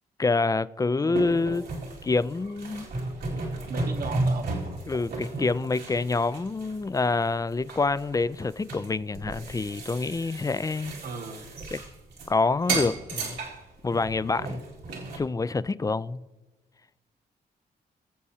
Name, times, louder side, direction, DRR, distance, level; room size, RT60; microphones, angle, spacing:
voice 1, 0.2-1.6 2.0-2.9 4.9-10.9 11.7-11.8 12.3-13.4 13.8-14.6 15.1-16.2, left 3 dB, 20° left, 0.3 m, -27 dB
voice 2, 1.0-1.5 3.7-4.6 11.0-11.5, right 4 dB, 60° right, 1.0 m, -37 dB
sound 1, 1.1-7.3 7.7-12.3 12.6-15.2, right 2 dB, 90° right, 2.2 m, -34 dB
21.0 x 7.3 x 2.8 m
cardioid pair, 60°, 18 cm